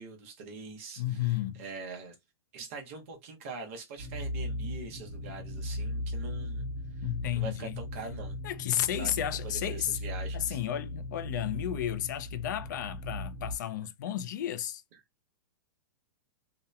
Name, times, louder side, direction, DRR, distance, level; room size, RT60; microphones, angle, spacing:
voice 1, 0.0-2.2 2.5-6.6 7.0-7.1 7.3-8.4 9.0-9.1 9.4-10.6, right 4 dB, 35° right, 0.7 m, -43 dB
voice 2, 1.0-1.6 7.0-7.8 8.4-10.0 10.3-14.8, left 11 dB, 45° left, 0.4 m, -32 dB
sound 1, 4.0-13.6, left 1 dB, 5° right, 0.9 m, -38 dB
2.7 x 2.0 x 2.3 m
supercardioid pair, 175°, 13 cm